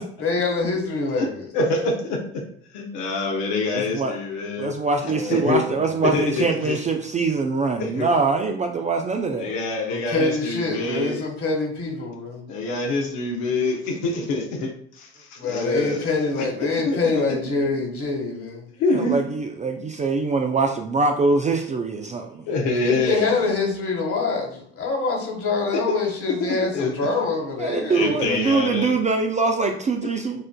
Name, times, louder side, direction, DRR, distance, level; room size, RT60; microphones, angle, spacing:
voice 1, 0.2-1.4 5.1-6.0 9.9-12.5 15.4-18.7 22.8-28.9, left 3 dB, 45° left, 1 dB, 1.5 m, -26 dB
voice 2, 1.5-2.4 2.7-4.7 5.0-5.6 6.0-6.8 7.8-8.1 9.4-11.2 12.5-16.0 16.4-16.5 16.8-17.2 18.8-19.2 22.5-23.5 25.7-26.0 26.7-26.9 27.9-28.9, left 3 dB, 70° left, 0 dB, 0.9 m, -25 dB
voice 3, 3.7-4.2 4.6-9.5 18.9-22.4 27.6-30.4, right 4 dB, 25° right, 4 dB, 0.4 m, -23 dB
6.3 x 2.5 x 2.2 m, 0.63 s
hypercardioid pair, 65°, 32 cm